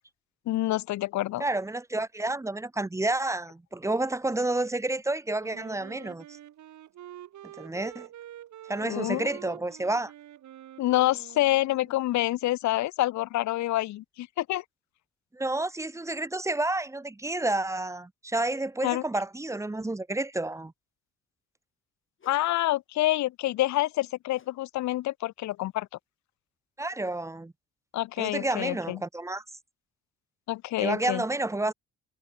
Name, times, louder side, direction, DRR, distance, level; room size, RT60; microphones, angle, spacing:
voice 1, 0.5-1.4 8.8-9.3 10.8-14.6 18.8-19.0 22.3-25.9 27.9-29.0 30.5-31.2, left 15 dB, 70° left, 0.6 m, -27 dB
voice 2, 1.4-6.2 7.6-8.1 8.7-10.1 15.3-20.7 26.8-27.5 28.2-29.4 30.8-31.7, right 2 dB, 10° right, 0.7 m, -30 dB
Wind instrument woodwind instrument, 5.4-12.1, right 12 dB, 70° right, 2.8 m, -47 dB
sound 1, 22.2-22.5 24.3-24.6 24.9-25.2 25.7-25.8, left 6 dB, 40° left, 2.7 m, -58 dB
cardioid pair, 90°, 30 cm